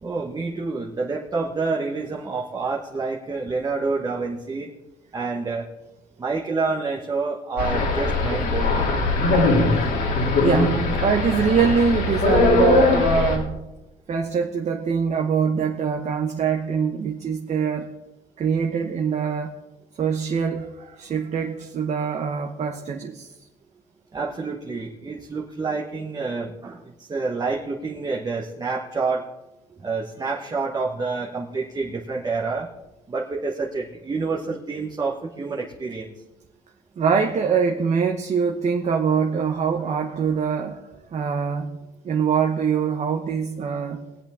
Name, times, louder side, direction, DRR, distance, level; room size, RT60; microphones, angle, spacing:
voice 1, 0.0-4.7 5.1-5.7 6.2-8.9 24.1-29.2 29.7-32.7 33.1-36.1, right 4 dB, 25° right, -2 dB, 1.3 m, -28 dB
sound 1, 7.6-13.4, left 3 dB, 80° left, 3.1 m, -21 dB
voice 2, 10.4-13.7 14.1-17.9 18.4-19.5 20.0-23.3 37.0-40.8 41.1-41.7 42.0-44.0, right 6 dB, 40° right, 3 dB, 1.0 m, -23 dB
21.0 x 8.2 x 3.7 m, 0.99 s
cardioid pair, 110°, 17 cm